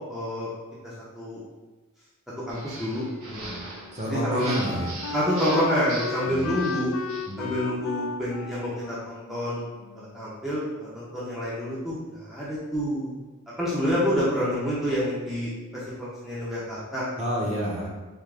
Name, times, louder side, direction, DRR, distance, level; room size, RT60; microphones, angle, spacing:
voice 1, 0.1-0.5 0.8-1.4 2.5-3.6 4.1-4.5 5.1-6.9 7.4-9.7 9.9-13.1 13.5-17.0, equal, ahead, -9 dB, 0.6 m, -28 dB
sound 1, 2.5-7.4, right 2 dB, 75° right, 0.9 m, -40 dB
Wind instrument woodwind instrument, 3.1-10.4, left 5 dB, 70° left, 0.3 m, -36 dB
voice 2, 3.3-3.6 3.9-4.9 6.2-6.5 7.3-7.5 17.2-17.9, equal, 30° right, -4 dB, 0.9 m, -29 dB
3.6 x 2.8 x 3.3 m, 1.2 s
head